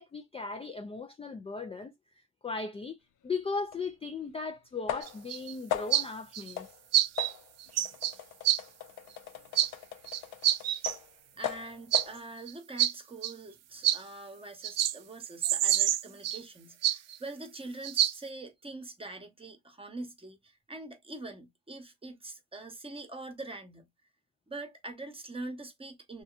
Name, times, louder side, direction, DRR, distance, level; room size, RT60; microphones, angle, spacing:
voice 1, 0.0-3.0 3.2-6.7, left 4 dB, 20° left, 0.4 m, -37 dB
sound 1, 3.7-3.8 4.9-5.3 5.7-6.1 6.6-6.8 7.2-11.1 11.4-12.2, left 10 dB, 85° left, 0.5 m, -38 dB
sound 2, 5.0-5.5 5.9-6.0 6.3-6.5 6.9-7.3 7.6-8.1 8.4-8.6 9.5-9.7 10.1-11.0 11.4-11.5 11.9-12.0 12.5-12.6 12.8-12.9 13.2-13.3 13.8-14.0 14.6-15.0 15.2-16.4 16.8-17.2 17.8-18.1, right 12 dB, 60° right, 0.4 m, -26 dB
voice 2, 11.4-23.9 24.5-26.2, right 2 dB, 20° right, 0.9 m, -44 dB
2.7 x 2.3 x 2.4 m
cardioid pair, 90°, 30 cm